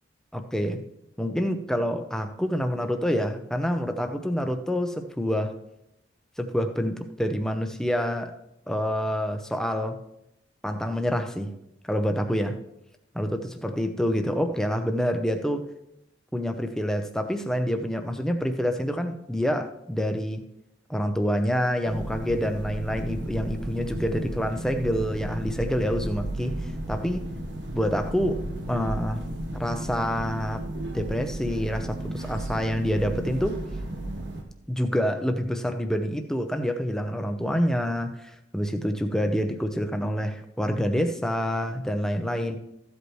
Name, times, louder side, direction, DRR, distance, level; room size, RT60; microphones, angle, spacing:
voice 1, 0.3-0.8 1.2-5.5 6.4-8.3 8.7-10.0 10.6-11.6 11.9-12.6 13.1-15.6 16.3-20.4 20.9-27.2 27.7-28.4 28.7-29.2 29.5-30.6 30.9-33.6 34.7-42.6, equal, 5° left, 6 dB, 0.7 m, -27 dB
sound 1, 21.9-34.4, right 1 dB, 65° right, 1.3 m, -34 dB
14.0 x 8.1 x 3.2 m, 0.82 s
head